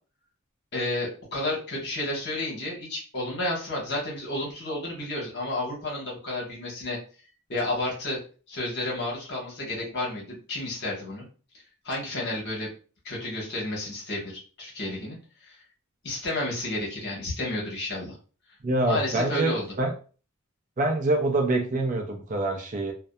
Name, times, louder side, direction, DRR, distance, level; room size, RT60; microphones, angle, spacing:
voice 1, 0.7-7.0 7.5-8.2 8.5-11.2 11.8-12.7 13.0-15.2 15.4-15.5 16.0-18.2 18.9-19.7, left 1 dB, 55° left, -3 dB, 1.1 m, -31 dB
voice 2, 18.6-19.9 20.8-22.9, right 2 dB, 35° right, 3 dB, 0.4 m, -25 dB
2.6 x 2.2 x 2.2 m, 0.37 s
head